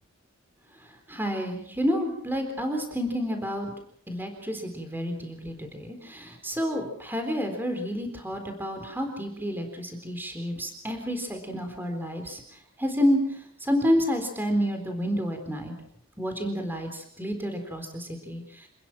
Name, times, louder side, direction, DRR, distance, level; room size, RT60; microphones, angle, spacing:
voice 1, 1.1-3.7 4.1-12.4 12.8-13.2 13.6-15.7 16.2-18.4, equal, 10° right, 4 dB, 3.9 m, -29 dB
27.5 x 20.0 x 6.1 m, 0.65 s
head